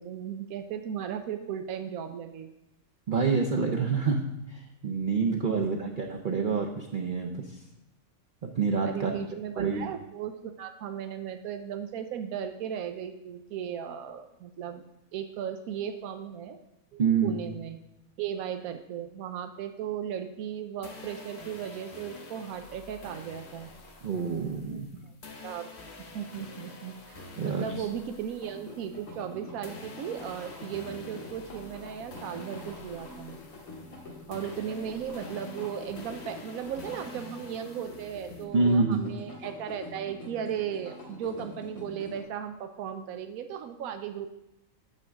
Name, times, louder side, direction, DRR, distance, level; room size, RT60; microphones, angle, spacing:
voice 1, 0.0-2.5 5.3-5.8 8.8-14.8 15.1-16.6 17.2-17.8 18.2-23.7 25.0-25.1 25.4-25.7 26.1-33.4 34.3-44.3, right 9 dB, 90° right, 7 dB, 1.1 m, -36 dB
voice 2, 3.1-4.2 4.5-7.6 8.4-9.1 9.6-9.9 16.9-17.3 24.0-24.9 27.4-27.8 38.5-39.0, right 5 dB, 45° right, 0 dB, 0.7 m, -27 dB
sound 1, 20.8-29.3 29.6-38.4, left 3 dB, 55° left, 1.3 m, -48 dB
sound 2, 28.4-42.2, left 2 dB, 85° left, 2.2 m, -45 dB
9.1 x 3.6 x 6.3 m, 0.89 s
omnidirectional pair, 1.5 m